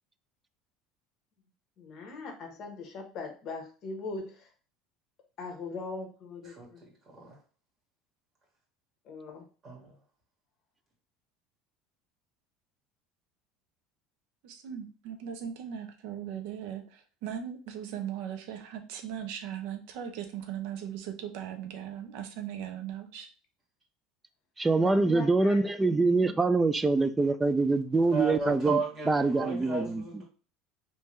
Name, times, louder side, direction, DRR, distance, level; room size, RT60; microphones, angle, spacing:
voice 1, 1.8-4.5 5.4-6.8 9.0-9.5 24.8-25.7, left 3 dB, 45° left, 3 dB, 1.1 m, -40 dB
voice 2, 6.5-7.4 9.6-9.9 28.1-30.2, right 3 dB, 30° right, -2 dB, 1.7 m, -34 dB
voice 3, 14.4-23.3, right 9 dB, 70° right, 7 dB, 0.7 m, -38 dB
voice 4, 24.6-28.8 29.1-30.0, right 3 dB, 10° right, 11 dB, 0.3 m, -25 dB
3.5 x 2.7 x 3.1 m, 0.37 s
cardioid pair, 140°, 0 cm